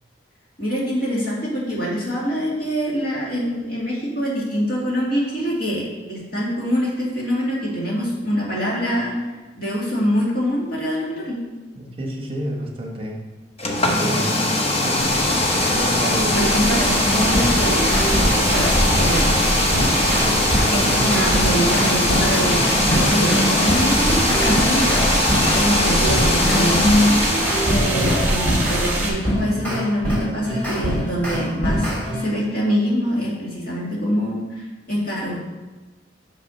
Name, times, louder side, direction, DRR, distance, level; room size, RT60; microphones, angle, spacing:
voice 1, 0.6-9.2 9.5-11.4 16.3-18.2 18.5-18.7 19.0-19.3 20.7-27.2 27.7-31.9 32.2-35.4, equal, 55° left, -5 dB, 2.4 m, -24 dB
voice 2, 11.8-13.2 13.8-14.5 14.7-15.3 15.7-16.4 20.7-21.2, equal, 30° right, 0 dB, 1.1 m, -29 dB
sound 1, 13.6-28.2, left 2 dB, 35° left, 0.9 m, -21 dB
sound 2, 15.0-29.1, right 1 dB, 10° right, 1.7 m, -24 dB
Beep Scale, 17.1-19.3 19.7-25.6 26.1-28.8 29.2-32.2, equal, 10° left, 2.9 m, -24 dB
6.1 x 6.0 x 5.5 m, 1.2 s
head